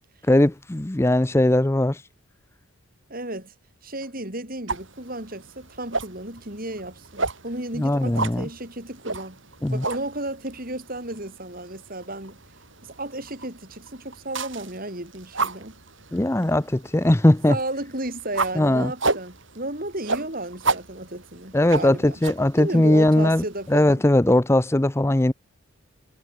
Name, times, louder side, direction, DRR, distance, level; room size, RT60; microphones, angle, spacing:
voice 1, 0.3-2.0 7.8-8.5 9.6-9.8 16.1-17.6 18.6-18.9 21.5-23.4 23.7-25.3, left 1 dB, 10° left, 0.5 m, -19 dB
voice 2, 3.1-3.5 3.8-9.4 9.7-12.4 12.8-15.7 17.5-22.2 22.6-24.0, right 1 dB, 40° right, 5.6 m, -33 dB
sound 1, 4.7-23.9, right 3 dB, 60° right, 6.6 m, -33 dB
head